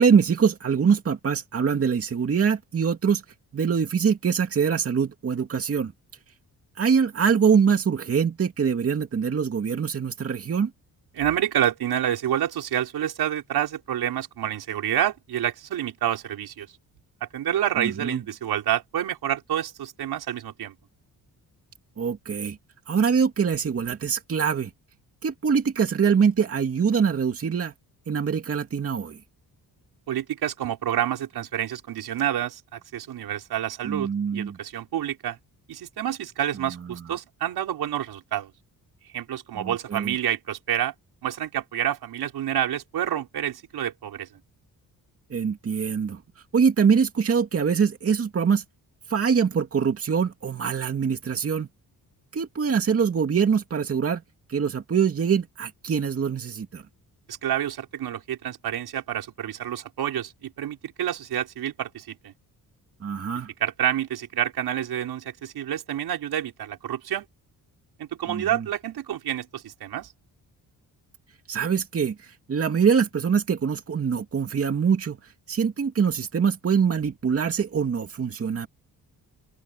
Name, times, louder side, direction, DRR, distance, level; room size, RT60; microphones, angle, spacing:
voice 1, 0.0-3.2 3.5-5.9 6.8-10.7 17.8-18.2 22.0-22.6 22.9-24.7 25.2-27.7 28.1-29.2 33.8-34.6 39.5-40.1 45.3-46.2 46.5-48.6 49.1-51.7 52.3-54.2 54.5-56.8 63.0-63.5 68.3-68.6 71.5-75.2 75.5-78.7, right 6 dB, 40° right, 2.4 m, -23 dB
voice 2, 11.1-16.7 17.2-20.8 30.1-35.4 35.7-38.5 39.0-40.9 41.2-44.3 57.3-62.3 63.6-67.3 68.0-70.1, right 11 dB, 85° right, 5.4 m, -28 dB
open air
wide cardioid pair, 145°, 37 cm